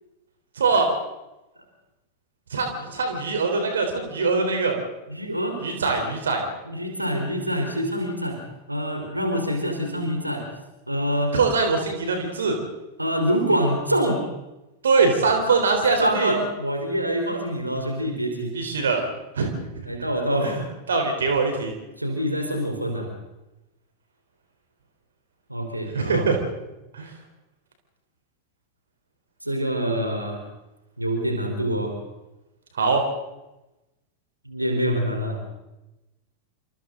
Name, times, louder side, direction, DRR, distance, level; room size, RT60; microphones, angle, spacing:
voice 1, 0.6-0.9 2.5-4.8 5.6-6.4 11.3-12.6 14.8-16.4 18.5-19.1 19.3-19.5 20.4-21.7 25.9-26.4 26.9-27.1 32.7-33.0, right 4 dB, 65° right, 4 dB, 3.9 m, -22 dB
voice 2, 5.1-5.6 6.7-8.4 8.7-10.4 10.9-11.3 13.0-14.2 16.0-18.6 19.9-20.6 22.0-23.1 25.5-26.3 29.4-30.4 31.0-32.0 34.5-35.4, equal, 85° right, 3 dB, 3.9 m, -25 dB
28.5 x 26.5 x 3.9 m, 0.99 s
figure-of-eight pair, 90°, 0 cm